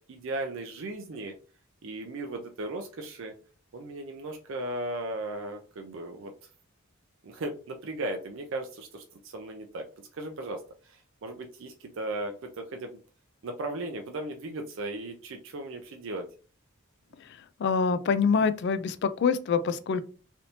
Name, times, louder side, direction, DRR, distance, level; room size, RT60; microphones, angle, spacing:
voice 1, 0.1-1.3 1.8-3.3 3.7-6.3 7.2-9.8 10.1-13.0 13.4-16.3, right 2 dB, 60° right, 0.4 m, -36 dB
voice 2, 17.6-20.0, left 5 dB, 50° left, 0.3 m, -25 dB
3.3 x 2.6 x 2.8 m
head